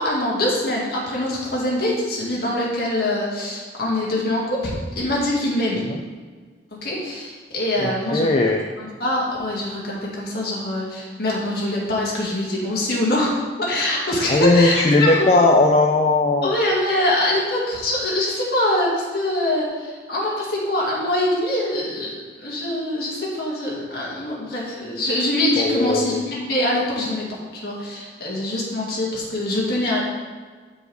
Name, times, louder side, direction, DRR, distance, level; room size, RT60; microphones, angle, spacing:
voice 1, 0.0-5.8 6.8-8.3 8.8-15.4 16.4-22.1 22.4-27.2 27.6-30.0, left 1 dB, 60° left, -5 dB, 2.1 m, -24 dB
voice 2, 7.8-8.6 14.3-16.5 25.6-26.2, left 2 dB, 35° left, 2 dB, 0.4 m, -18 dB
12.0 x 4.7 x 3.4 m, 1.5 s
head